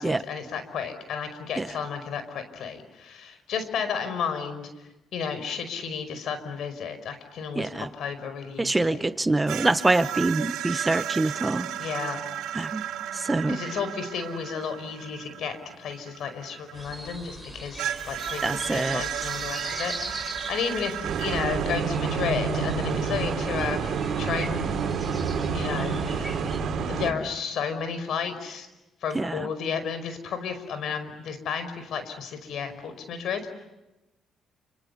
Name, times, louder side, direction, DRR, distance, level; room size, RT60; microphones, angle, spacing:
voice 1, 0.0-4.7 5.1-8.9 11.8-12.2 13.5-18.4 18.7-23.8 24.2-24.7 25.5-26.4 26.9-28.7 29.0-33.4, left 6 dB, 75° left, 10 dB, 5.2 m, -32 dB
voice 2, 7.5-7.9 8.6-11.9 12.5-12.8 13.1-13.8 18.4-19.3 29.1-29.5, right 2 dB, 20° right, 12 dB, 1.1 m, -25 dB
sound 1, 9.5-17.1 17.8-21.6, right 11 dB, 90° right, 1.8 m, -34 dB
sound 2, 16.7-26.6, right 1 dB, ahead, 6.4 m, -40 dB
sound 3, 21.0-27.1, right 6 dB, 65° right, 3.9 m, -28 dB
29.5 x 28.0 x 7.1 m, 0.98 s
cardioid pair, 90°, 0 cm